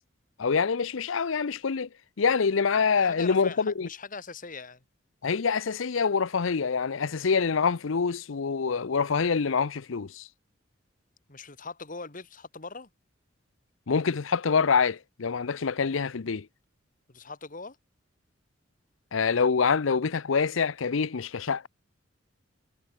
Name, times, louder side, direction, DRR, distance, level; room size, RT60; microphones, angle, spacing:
voice 1, 0.4-1.9 2.2-3.9 5.2-10.3 13.9-16.5 19.1-21.7, left 5 dB, 80° left, 0.6 m, -26 dB
voice 2, 3.0-4.8 7.0-7.2 11.3-12.9 17.1-17.8, left 4 dB, 40° left, 2.0 m, -41 dB
head